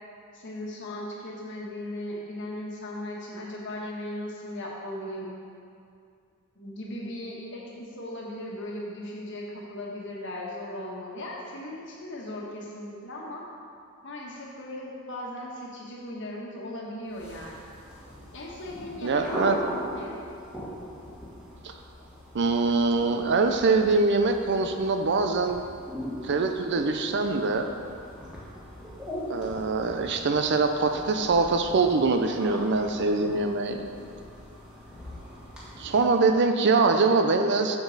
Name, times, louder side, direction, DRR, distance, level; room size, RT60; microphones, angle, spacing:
voice 1, 0.3-5.3 6.5-13.4 14.0-17.5 18.3-20.1, left 1 dB, 60° left, -3 dB, 1.4 m, -37 dB
sound 1, 17.1-36.4, equal, 5° right, 1.8 m, -40 dB
voice 2, 19.0-19.6 21.6-21.7 22.3-25.6 26.2-27.7 29.3-33.9 35.8-37.8, right 3 dB, 55° right, 6 dB, 0.5 m, -23 dB
7.6 x 7.1 x 4.0 m, 2.3 s
head